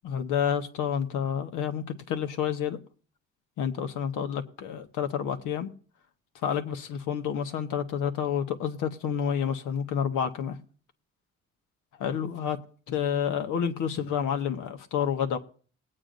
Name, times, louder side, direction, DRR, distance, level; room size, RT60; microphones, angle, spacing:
voice 1, 0.0-2.8 3.6-5.7 6.4-10.6 12.0-12.6 12.9-15.4, left 8 dB, 85° left, 1.2 m, -29 dB
20.5 x 8.8 x 2.6 m
cardioid pair, 90°, 30 cm